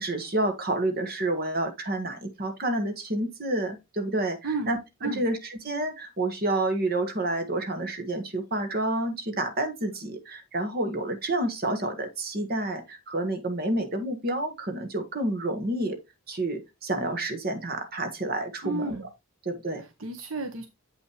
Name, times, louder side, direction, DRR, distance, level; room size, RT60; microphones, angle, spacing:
voice 1, 0.0-16.0 16.3-19.1 19.4-19.8, right 1 dB, 45° right, 1.6 m, -29 dB
voice 2, 18.6-19.1 19.8-20.7, right 3 dB, 70° right, 1.0 m, -32 dB
8.0 x 5.7 x 3.1 m
head